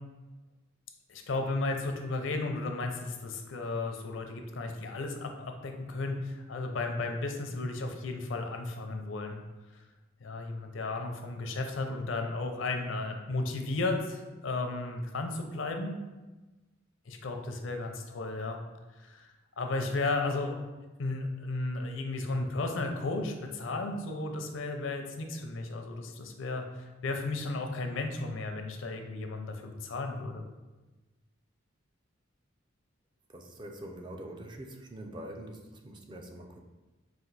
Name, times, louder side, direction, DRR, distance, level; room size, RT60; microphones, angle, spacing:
voice 1, 1.1-9.4 10.2-16.0 17.1-18.6 19.0-19.3 19.6-20.6 21.0-30.4, left 2 dB, 70° left, 4 dB, 0.5 m, -34 dB
voice 2, 33.3-36.6, right 1 dB, 25° right, 3 dB, 0.4 m, -44 dB
4.3 x 2.5 x 4.0 m, 1.2 s
head